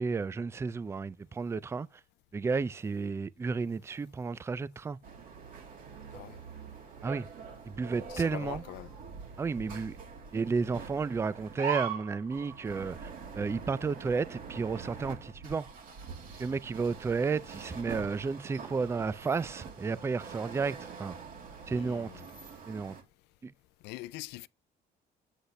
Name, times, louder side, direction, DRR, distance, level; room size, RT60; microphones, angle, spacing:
voice 1, 0.0-1.9 2.3-5.0 7.0-7.3 7.7-8.6 9.4-9.9 10.3-13.0 13.3-15.7 16.4-21.2 21.7-22.1 22.7-22.9 23.4-23.5, right 4 dB, 15° right, 0.3 m, -32 dB
sound 1, 5.0-23.0, right 6 dB, 55° right, 2.5 m, -43 dB
voice 2, 8.1-8.9 21.7-22.3 23.8-24.5, left 18 dB, 85° left, 0.4 m, -43 dB
8.2 x 7.9 x 3.2 m
cardioid pair, 110°, 17 cm